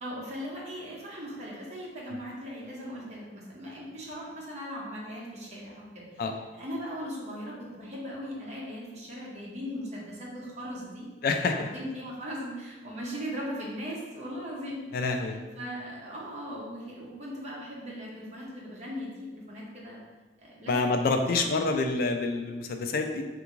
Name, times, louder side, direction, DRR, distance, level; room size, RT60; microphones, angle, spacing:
voice 1, 0.0-6.2 6.6-11.0 11.7-14.8 15.6-20.0 20.4-20.8 21.3-21.5, equal, 40° right, -5 dB, 0.7 m, -38 dB
voice 2, 11.2-11.7 14.9-15.4 20.7-23.3, left 3 dB, 50° left, 5 dB, 0.3 m, -27 dB
3.4 x 2.5 x 3.0 m, 1.2 s
head